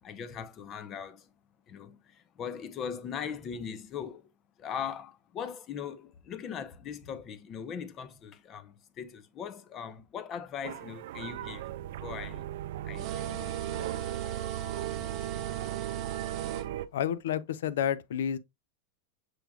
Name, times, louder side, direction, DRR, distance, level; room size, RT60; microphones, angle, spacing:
voice 1, 0.0-1.3 1.7-4.3 4.6-11.7 12.0-12.5 12.8-13.6 15.0-15.1, left 7 dB, 30° left, 0.6 m, -40 dB
sound 1, 10.6-16.9, right 12 dB, 65° right, 0.3 m, -37 dB
sound 2, 13.0-16.7, right 9 dB, 40° right, 0.8 m, -39 dB
voice 2, 16.9-18.4, left 9 dB, 80° left, 0.5 m, -30 dB
6.1 x 3.4 x 2.3 m
supercardioid pair, 150°, 0 cm